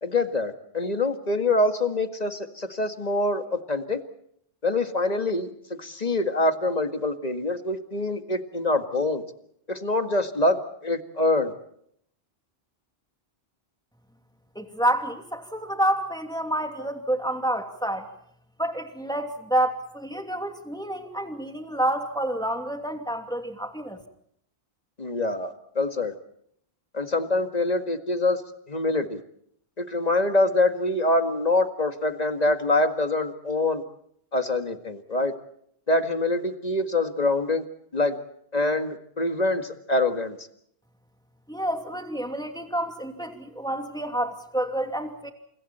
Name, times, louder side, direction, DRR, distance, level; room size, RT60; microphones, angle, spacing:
voice 1, 0.0-4.0 4.6-5.5 5.8-9.2 9.7-11.5 25.0-26.1 26.9-28.4 28.7-29.2 29.8-33.8 34.3-35.3 35.9-37.6 37.9-38.2 38.5-40.4, left 2 dB, 40° left, 7 dB, 2.0 m, -25 dB
voice 2, 14.5-18.1 18.6-24.0 41.5-45.3, right 1 dB, 5° left, 4 dB, 2.8 m, -28 dB
30.0 x 28.5 x 4.4 m, 0.71 s
omnidirectional pair, 1.0 m